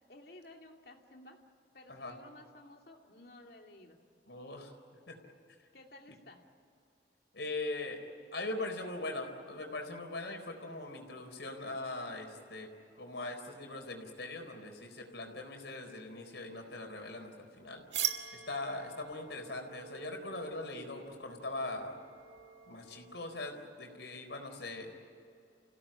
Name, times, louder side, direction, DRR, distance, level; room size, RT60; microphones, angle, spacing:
voice 1, 0.1-1.4 1.7-4.0 5.7-6.4, left 1 dB, 60° left, 2 dB, 2.7 m, -54 dB
voice 2, 4.3-4.7 5.1-5.2 7.3-8.0 8.3-12.7 13.0-17.8 18.3-22.0 22.7-24.9, left 2 dB, 85° left, 3 dB, 4.2 m, -41 dB
sound 1, 17.9-23.5, right 10 dB, 85° right, 1.8 m, -42 dB
30.0 x 16.5 x 8.8 m, 2.6 s
head